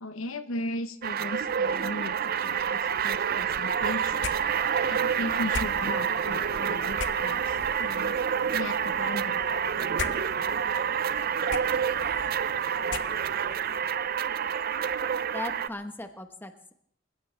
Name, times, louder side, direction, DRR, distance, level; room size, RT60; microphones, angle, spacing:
voice 1, 0.0-4.3 4.9-8.1 8.5-9.4, left 2 dB, 90° left, 10 dB, 1.2 m, -37 dB
sound 1, 1.0-15.7, right 7 dB, 50° right, 0.5 m, -28 dB
sound 2, 4.2-13.6, left 4 dB, 60° left, 0.9 m, -41 dB
voice 2, 15.3-16.7, left 1 dB, 10° left, 7 dB, 1.2 m, -38 dB
27.0 x 15.5 x 3.4 m, 0.67 s
head